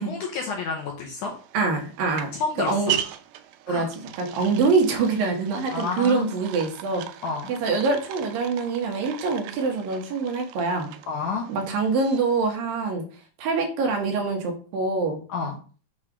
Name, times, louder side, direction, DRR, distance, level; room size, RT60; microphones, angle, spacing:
voice 1, 0.0-1.3 2.3-3.0 3.7-3.9 5.7-6.4 7.2-7.5 11.1-11.4 15.3-15.6, left 4 dB, 70° left, 1 dB, 2.0 m, -30 dB
sound 1, 1.3-12.6, right 11 dB, 85° right, 2.6 m, -38 dB
voice 2, 1.5-2.3 2.7-2.9 3.7-3.9 4.2-7.0 7.5-10.9 11.5-13.0 13.4-15.2, right 4 dB, 70° right, 2 dB, 2.9 m, -24 dB
7.5 x 3.2 x 6.0 m, 0.39 s
omnidirectional pair, 4.5 m